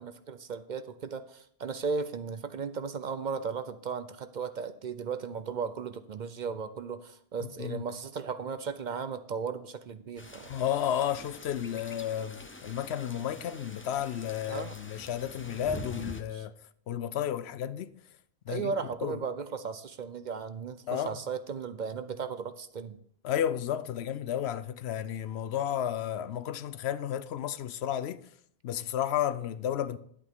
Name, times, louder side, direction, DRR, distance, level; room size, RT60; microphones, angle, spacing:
voice 1, 0.0-10.5 14.5-14.7 16.3-16.5 18.5-23.0, right 5 dB, 55° right, 0.7 m, -36 dB
voice 2, 7.4-7.8 10.5-16.5 16.9-17.9 18.5-18.7 19.0-19.2 20.9-21.2 23.2-28.2 28.6-30.0, left 10 dB, 90° left, 0.9 m, -32 dB
sound 1, 10.2-16.2, left 2 dB, 15° left, 0.5 m, -45 dB
10.5 x 8.5 x 3.6 m
omnidirectional pair, 1.1 m